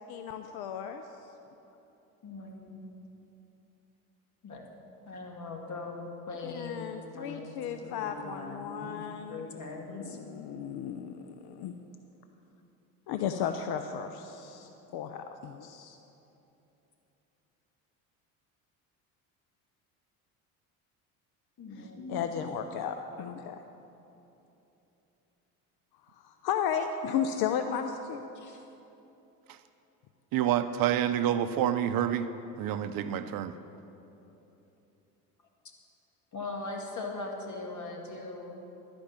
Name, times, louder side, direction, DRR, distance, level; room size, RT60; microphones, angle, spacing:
voice 1, 0.1-1.0 6.4-9.5 9.9-11.7 13.1-16.0 21.7-23.6 26.1-28.3, left 8 dB, 55° left, 7 dB, 0.7 m, -35 dB
voice 2, 2.2-2.8 4.4-4.6 5.1-7.5 7.8-9.0 9.3-10.2 21.6-22.2 28.3-28.6 36.3-38.6, left 3 dB, 40° left, 1 dB, 2.1 m, -40 dB
voice 3, 30.3-32.3 32.6-33.5, right 10 dB, 50° right, 11 dB, 0.6 m, -28 dB
11.5 x 5.3 x 8.8 m, 3.0 s
hypercardioid pair, 70°, 44 cm